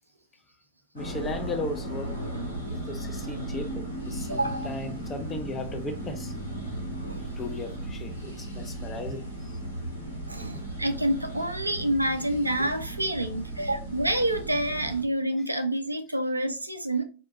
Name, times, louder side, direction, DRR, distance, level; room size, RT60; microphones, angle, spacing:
voice 1, 0.9-2.2 2.7-6.3 7.4-9.2 10.4-10.6 12.6-12.7, left 2 dB, 20° left, 0.6 m, -36 dB
sound 1, 1.0-15.0, right 1 dB, 85° left, 1.0 m, -36 dB
voice 2, 4.3-4.7 7.0-7.3 10.3-17.0, right 1 dB, 85° right, 0.4 m, -28 dB
4.1 x 2.2 x 2.6 m
figure-of-eight pair, 90°, 0 cm